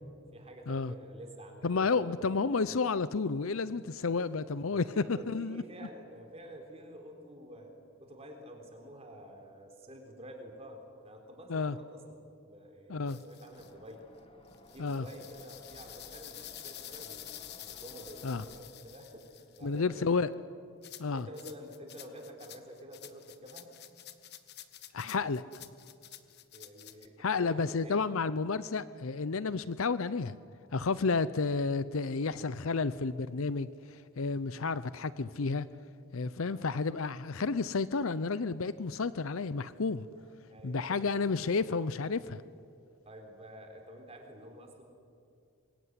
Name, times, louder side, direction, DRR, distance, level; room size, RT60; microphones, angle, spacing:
voice 1, 0.3-2.4 4.2-4.4 4.7-7.7 8.0-14.1 14.7-17.3 17.7-20.4 21.1-23.7 26.5-28.1 36.5-36.7 40.5-41.0 43.0-44.8, equal, 30° right, 3 dB, 3.8 m, -49 dB
voice 2, 1.6-5.6 11.5-11.8 12.9-13.2 14.8-15.1 18.2-18.4 19.6-20.3 21.0-21.3 24.9-25.4 27.2-30.4 30.7-35.7 36.1-40.1 40.6-42.4, left 4 dB, 65° left, 16 dB, 0.6 m, -31 dB
sound 1, 13.1-13.7 14.5-19.8 20.8-27.1, left 12 dB, 50° left, 1.4 m, -49 dB
sound 2, 13.5-18.6, left 1 dB, 25° left, 1.7 m, -57 dB
26.5 x 22.5 x 9.6 m, 2.4 s
head